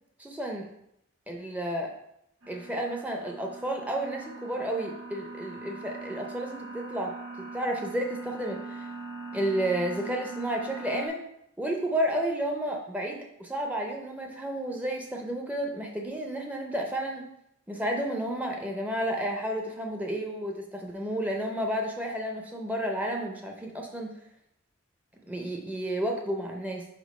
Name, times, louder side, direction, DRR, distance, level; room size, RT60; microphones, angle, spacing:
voice 1, 0.2-0.7 1.3-1.9 2.5-7.1 7.5-8.9 9.3-11.2 11.6-17.3 17.7-24.2 25.2-26.9, right 1 dB, 5° right, 1 dB, 0.5 m, -31 dB
sound 1, 2.4-11.1, right 3 dB, 90° right, 1.4 m, -41 dB
5.2 x 3.5 x 5.2 m, 0.78 s
head